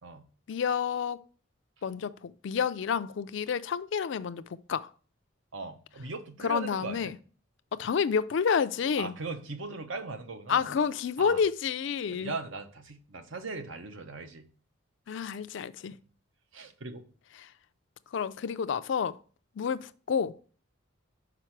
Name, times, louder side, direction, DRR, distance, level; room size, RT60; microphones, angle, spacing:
voice 1, 0.5-1.2 1.8-4.4 4.7-4.9 6.4-7.1 7.8-9.1 10.5-12.3 15.1-15.9 18.1-19.2 19.6-20.3, left 6 dB, 60° left, 0.3 m, -29 dB
voice 2, 5.5-7.2 9.0-10.8 11.2-11.4 12.1-14.5 16.5-17.0, right 3 dB, 70° right, 0.8 m, -39 dB
5.9 x 4.9 x 4.5 m
head